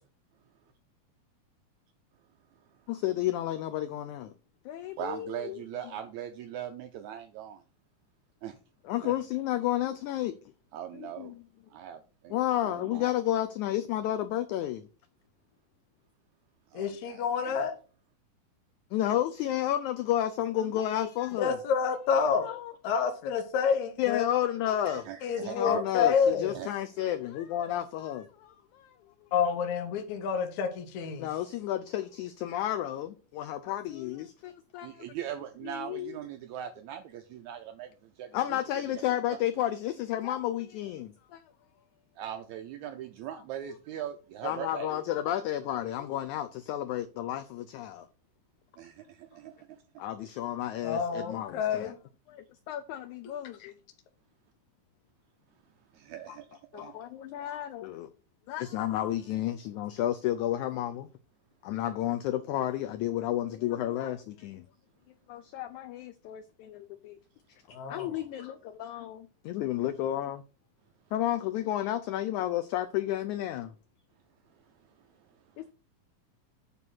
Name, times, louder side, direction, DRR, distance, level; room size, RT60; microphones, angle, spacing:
voice 1, 2.9-4.3 4.6-5.6 8.9-10.3 10.9-11.4 12.3-14.9 18.9-21.6 22.4-22.7 24.0-25.0 25.4-28.9 31.2-35.0 35.6-36.1 38.3-41.4 44.4-48.1 50.0-51.9 52.7-53.7 56.7-58.1 58.5-61.1 61.6-64.6 65.3-67.2 67.9-70.4 71.1-73.7 75.6-75.7, left 12 dB, 85° left, 1.7 m, -32 dB
voice 2, 4.9-7.6 8.4-8.6 9.0-9.1 10.7-11.4 11.7-13.1 16.7-17.6 24.9-26.7 34.8-38.6 39.3-39.4 42.2-45.0 48.8-49.8 55.9-57.0 74.5-75.5, right 10 dB, 80° right, 1.7 m, -41 dB
voice 3, 16.7-17.7 21.4-22.5 22.8-24.3 25.2-26.5 29.3-31.3 50.8-51.9 53.6-53.7 67.7-68.1, left 6 dB, 65° left, 2.2 m, -28 dB
9.1 x 3.5 x 6.2 m
omnidirectional pair, 4.0 m